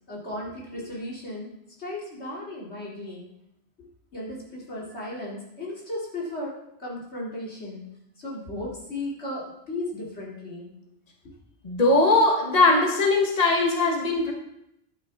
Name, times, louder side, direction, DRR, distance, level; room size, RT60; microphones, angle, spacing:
voice 1, 0.1-1.5 1.8-3.3 4.1-7.8 8.2-10.7, left 1 dB, 85° left, -5 dB, 3.1 m, -35 dB
voice 2, 11.6-14.3, left 2 dB, 40° left, 1 dB, 1.4 m, -20 dB
12.0 x 9.1 x 3.6 m, 0.80 s
omnidirectional pair, 1.1 m